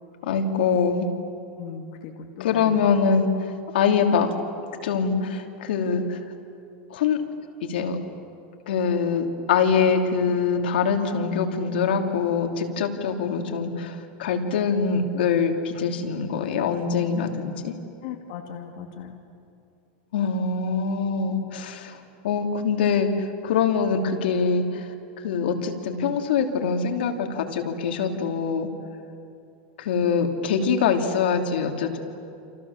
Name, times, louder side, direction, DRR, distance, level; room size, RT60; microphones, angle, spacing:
voice 1, 0.2-1.1 2.4-4.3 4.8-6.2 6.9-7.2 7.6-8.0 8.7-17.7 20.1-22.0 22.2-24.9 25.2-28.7 29.8-32.0, left 6 dB, 85° left, 4 dB, 3.0 m, -24 dB
voice 2, 1.6-2.1 2.4-2.9 18.0-19.2, left 8 dB, 55° left, 2 dB, 2.7 m, -37 dB
29.0 x 27.5 x 7.3 m, 2.5 s
supercardioid pair, 165°, 5 cm